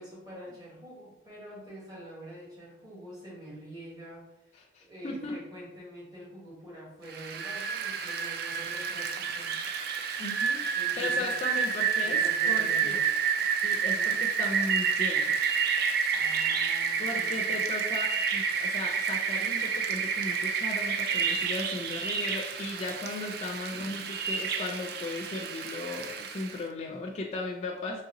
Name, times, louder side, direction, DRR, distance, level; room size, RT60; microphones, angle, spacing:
voice 1, 0.0-4.2 4.8-9.5 10.7-11.3 12.0-13.0 13.7-14.1 16.1-17.5 23.7-24.2, right 1 dB, 20° right, -6 dB, 1.3 m, -45 dB
voice 2, 4.7-5.4 10.2-10.6 11.0-12.2 12.5-13.0 13.6-15.4 17.0-24.0 24.3-28.0, left 2 dB, 35° left, 1 dB, 0.3 m, -36 dB
Rain, 7.1-26.6, right 6 dB, 50° right, 0.3 m, -29 dB
3.8 x 3.1 x 2.9 m, 0.90 s
head